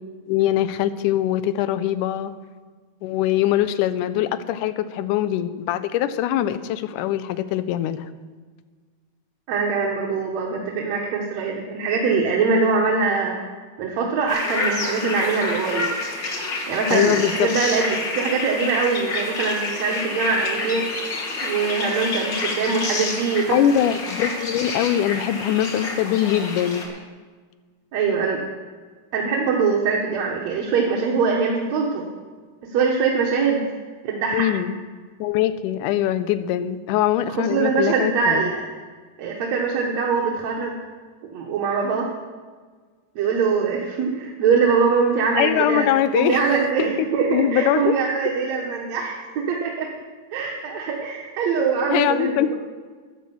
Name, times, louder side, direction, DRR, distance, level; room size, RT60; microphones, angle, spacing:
voice 1, 0.3-2.3 3.0-8.1 16.9-17.5 23.5-27.0 34.3-34.8 35.2-38.5 45.3-46.4 46.8-46.9 47.3-47.9 51.9-52.6, left 11 dB, 90° left, 13 dB, 2.1 m, -22 dB
voice 2, 9.5-13.4 13.8-15.9 16.7-20.9 21.4-23.6 27.9-28.4 29.1-32.1 32.7-33.6 34.0-34.5 37.3-38.6 39.2-40.8 41.3-42.1 43.2-49.9 50.3-52.6, right 5 dB, 65° right, -1 dB, 2.2 m, -23 dB
sound 1, 14.3-26.9, left 3 dB, 45° left, 1.8 m, -28 dB
10.5 x 10.5 x 7.0 m, 1.5 s
omnidirectional pair, 3.5 m